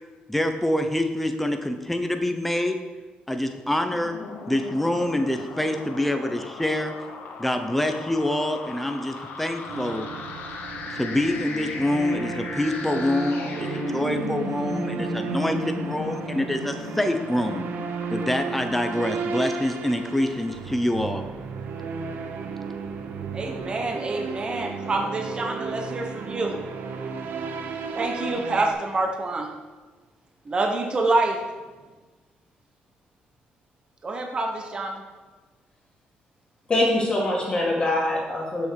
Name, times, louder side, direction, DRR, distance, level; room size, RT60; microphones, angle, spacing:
voice 1, 0.3-2.8 3.3-4.2 4.5-6.9 7.4-10.1 10.9-17.6 18.1-21.2, left 1 dB, 5° left, 6 dB, 0.8 m, -26 dB
sound 1, 3.7-20.1, left 4 dB, 75° left, 1.2 m, -37 dB
sound 2, 9.7-28.7, right 5 dB, 70° right, 0.9 m, -34 dB
voice 2, 23.3-26.6 27.9-29.5 30.4-31.4 34.0-35.0, right 2 dB, 30° right, 2 dB, 1.1 m, -26 dB
voice 3, 36.7-38.7, left 1 dB, 30° left, -3 dB, 2.0 m, -23 dB
7.1 x 6.2 x 6.5 m, 1.3 s
cardioid pair, 125°, 3 cm